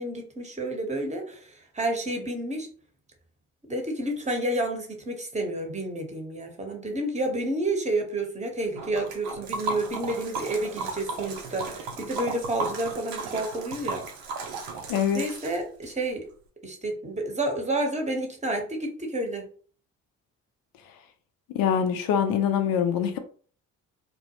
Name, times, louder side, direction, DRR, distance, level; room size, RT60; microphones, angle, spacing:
voice 1, 0.0-2.7 3.7-14.0 15.1-16.3 16.6-19.5, right 1 dB, 15° right, 3 dB, 0.9 m, -30 dB
Liquid, 8.8-15.9, right 4 dB, 75° right, 0.7 m, -35 dB
voice 2, 14.9-15.2 21.5-23.2, left 8 dB, 60° left, 7 dB, 0.6 m, -24 dB
2.2 x 2.1 x 2.8 m, 0.43 s
hypercardioid pair, 45°, 40 cm